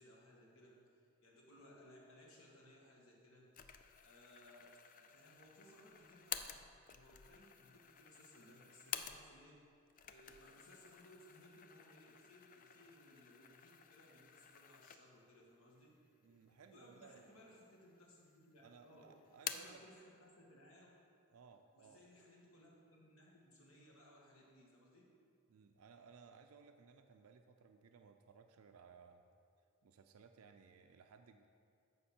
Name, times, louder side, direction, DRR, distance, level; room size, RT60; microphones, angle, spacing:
voice 1, 0.0-3.5 4.0-4.7 4.9-6.6 6.9-9.6 10.1-15.9 16.6-19.1 19.4-20.9 21.7-25.0, left 1 dB, 65° left, -3 dB, 1.8 m, -63 dB
sound 1, 3.5-9.5 9.9-15.3 15.8-15.9 16.7-17.4 17.7-18.4 18.7-19.8, left 8 dB, 35° left, 0.4 m, -51 dB
voice 2, 16.2-17.3 18.6-19.8 21.3-22.1 25.5-29.2 29.8-31.5, right 5 dB, 80° right, 6 dB, 0.5 m, -61 dB
13.0 x 5.4 x 4.3 m, 2.5 s
head